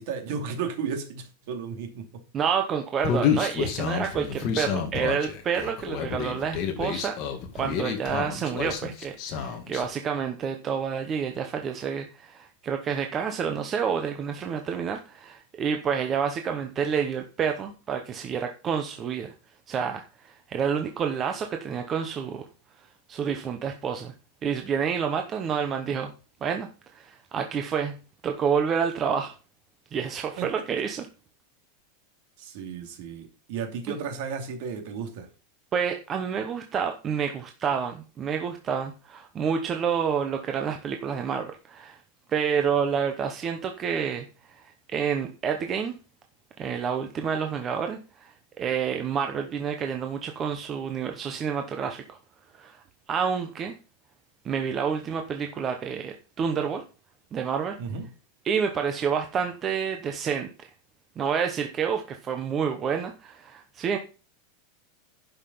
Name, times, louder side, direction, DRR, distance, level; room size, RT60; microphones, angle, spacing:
voice 1, 0.0-2.2 30.4-30.5 32.4-35.3 57.8-58.1, right 6 dB, 50° right, 5 dB, 2.6 m, -34 dB
voice 2, 2.3-7.2 7.5-19.3 19.7-22.4 22.8-24.1 24.4-26.1 26.4-29.3 29.9-31.1 33.9-34.0 35.7-42.0 42.3-44.3 44.6-45.9 46.6-52.2 52.5-53.7 54.4-56.8 57.3-57.8 58.4-60.7 61.2-64.0, right 7 dB, 20° right, 5 dB, 0.8 m, -29 dB
Human voice, 3.0-9.8, left 7 dB, 35° left, 1.9 m, -29 dB
11.0 x 5.7 x 5.5 m, 0.36 s
supercardioid pair, 175°, 0 cm